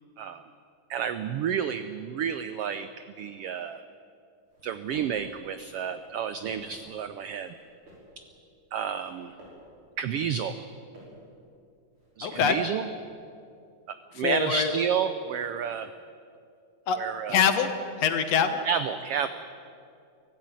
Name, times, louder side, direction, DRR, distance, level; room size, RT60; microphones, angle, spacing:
voice 1, 0.9-2.9 3.2-3.8 4.6-7.5 8.2-8.3 8.7-9.3 10.0-10.7 12.2-12.9 13.9-15.9 17.0-17.4 18.6-19.3, right 7 dB, 90° right, 11 dB, 1.3 m, -30 dB
sound 1, 4.4-5.3 5.9-6.8 7.5-8.2 8.9-9.7 10.4-11.3 11.9-12.7, equal, 40° right, 6.5 m, -51 dB
voice 2, 12.2-12.6 14.2-14.7 16.9-17.0 17.3-17.7 18.0-18.6, left 7 dB, 65° left, 8 dB, 2.2 m, -24 dB
24.0 x 14.5 x 9.1 m, 2.4 s
omnidirectional pair, 3.5 m